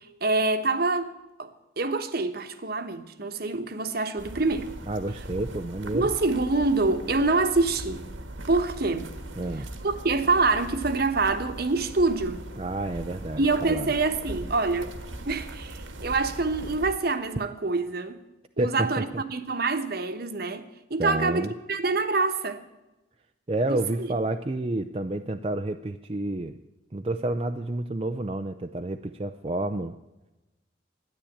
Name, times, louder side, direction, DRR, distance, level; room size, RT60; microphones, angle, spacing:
voice 1, 0.0-1.5 1.8-4.7 5.9-8.0 8.5-9.1 9.8-12.4 13.4-14.9 15.3-18.2 18.6-20.6 20.9-22.6 23.7-24.1, right 3 dB, 50° right, 1.1 m, -26 dB
sound 1, 4.2-16.9, right 1 dB, 85° right, 1.6 m, -40 dB
voice 2, 4.9-6.1 9.4-9.7 12.6-13.9 18.6-19.2 21.0-21.5 23.5-26.6 26.9-29.9, right 2 dB, 30° right, 0.5 m, -29 dB
13.0 x 10.5 x 8.6 m
head